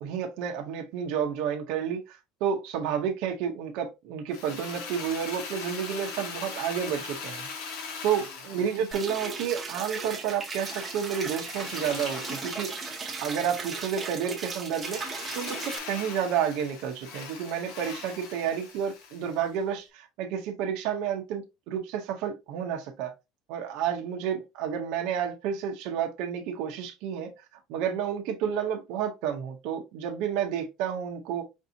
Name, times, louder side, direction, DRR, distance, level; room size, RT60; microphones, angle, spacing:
voice 1, 0.0-7.5 8.0-12.7 13.2-23.1 23.5-27.3 27.7-31.4, right 8 dB, 60° right, 0.7 m, -30 dB
Drill, 4.3-9.8 10.5-13.8 14.8-19.6, left 5 dB, 70° left, 1.2 m, -41 dB
sound 1, 8.9-15.8, right 4 dB, 15° right, 0.9 m, -36 dB
5.2 x 2.6 x 2.7 m
cardioid pair, 165°, 0 cm